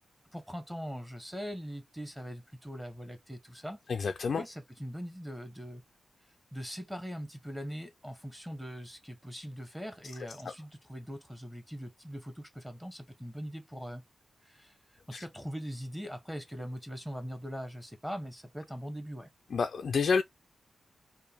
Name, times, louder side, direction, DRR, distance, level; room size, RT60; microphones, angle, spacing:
voice 1, 0.3-3.8 4.3-5.8 6.5-14.0 14.4-14.8 15.1-19.3, equal, 5° right, 0.7 m, -41 dB
voice 2, 3.9-4.4 15.1-15.2 19.5-20.2, left 5 dB, 55° left, 0.3 m, -28 dB
3.5 x 2.5 x 3.4 m
wide cardioid pair, 170°, 0 cm